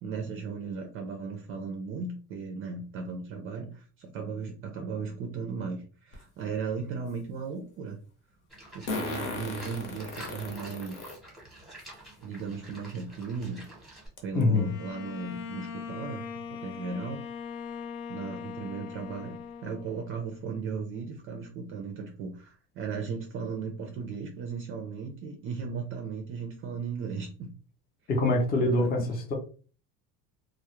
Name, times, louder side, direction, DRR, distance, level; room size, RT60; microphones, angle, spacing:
voice 1, 0.0-8.0 8.7-11.1 12.2-13.6 14.2-16.2 16.5-17.2 18.1-27.5 28.6-29.1, right 5 dB, 40° right, 4 dB, 0.4 m, -36 dB
Fart, 6.1-6.2 8.9-11.2 11.8-11.9 13.2-13.3 13.6-13.7 14.2-14.4, left 3 dB, 60° left, 0.8 m, -36 dB
Livestock farm animals working animals, 8.5-14.1, right 1 dB, ahead, 0.8 m, -48 dB
voice 2, 14.4-14.7 28.1-29.3, left 2 dB, 25° left, 2 dB, 0.5 m, -24 dB
Bowed string instrument, 14.5-20.3, left 6 dB, 80° left, 0.5 m, -40 dB
2.2 x 2.0 x 2.9 m, 0.38 s
cardioid pair, 135°, 35 cm